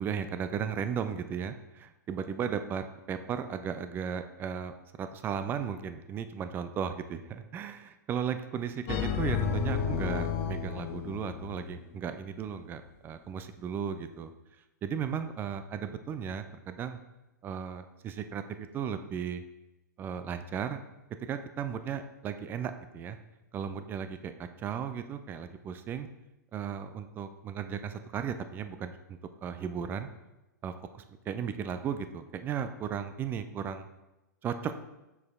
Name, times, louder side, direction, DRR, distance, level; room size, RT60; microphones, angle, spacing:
voice 1, 0.0-14.3 14.8-17.0 17.4-19.4 20.0-20.8 21.3-23.2 23.5-26.1 26.5-30.1 30.6-33.9 34.4-34.8, right 7 dB, 20° right, 10 dB, 0.4 m, -36 dB
sound 1, 8.9-11.8, left 7 dB, 35° left, 0.5 m, -31 dB
6.1 x 4.8 x 3.6 m, 1.0 s
figure-of-eight pair, 105°, 10 cm